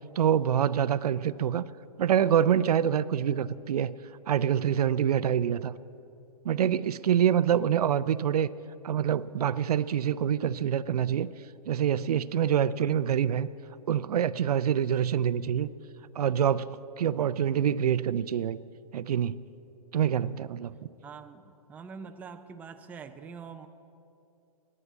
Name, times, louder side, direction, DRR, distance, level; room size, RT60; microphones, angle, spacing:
voice 1, 0.2-1.6 2.0-4.0 4.3-5.7 6.4-8.5 8.8-11.3 11.7-13.5 13.9-15.7 16.2-18.6 18.9-19.4 19.9-20.7, right 9 dB, 80° right, 17 dB, 0.5 m, -26 dB
voice 2, 21.0-23.7, right 6 dB, 10° right, 7 dB, 0.4 m, -45 dB
11.0 x 9.8 x 8.5 m, 2.7 s
hypercardioid pair, 135°, 19 cm